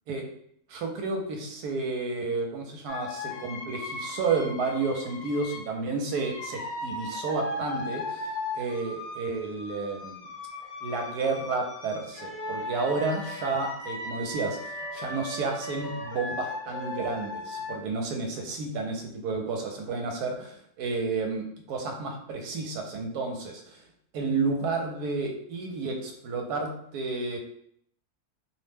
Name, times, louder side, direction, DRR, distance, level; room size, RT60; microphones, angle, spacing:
voice 1, 0.7-8.3 8.5-10.2 10.8-23.8 24.1-27.4, right 3 dB, 80° right, 3 dB, 1.1 m, -31 dB
sound 1, 2.9-5.7 6.1-17.7, left 2 dB, 65° left, 0.6 m, -37 dB
2.7 x 2.1 x 3.2 m, 0.68 s
omnidirectional pair, 1.6 m